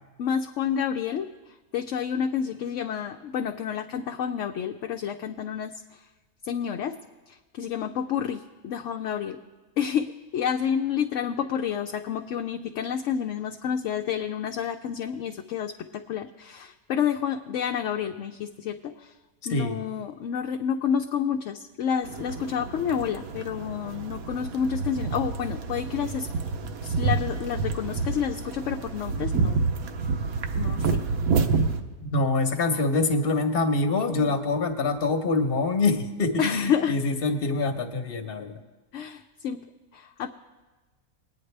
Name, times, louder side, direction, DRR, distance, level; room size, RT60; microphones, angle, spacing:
voice 1, 0.2-1.3 1.7-6.0 6.4-6.9 7.3-9.4 9.8-19.1 19.5-26.3 26.8-29.6 30.5-31.0 36.4-36.9 38.9-39.6 39.9-40.3, left 8 dB, 65° left, 4 dB, 0.8 m, -29 dB
sound 1, 22.0-31.8, right 4 dB, 75° right, 1.2 m, -28 dB
voice 2, 32.0-38.6, left 3 dB, 45° left, 6 dB, 1.1 m, -25 dB
21.5 x 9.4 x 3.3 m, 1.2 s
omnidirectional pair, 1.5 m